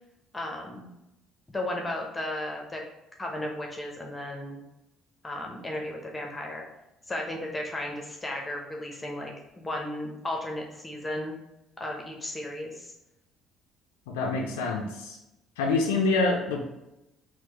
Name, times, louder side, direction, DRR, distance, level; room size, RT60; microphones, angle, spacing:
voice 1, 0.3-0.9 1.5-2.8 3.2-4.6 5.2-6.7 7.1-11.4 11.8-12.9, left 1 dB, 20° left, 1 dB, 0.7 m, -34 dB
voice 2, 14.1-15.2 15.6-16.6, left 3 dB, 80° left, 0 dB, 0.4 m, -26 dB
4.5 x 2.0 x 3.0 m, 0.90 s
hypercardioid pair, 50°, 0 cm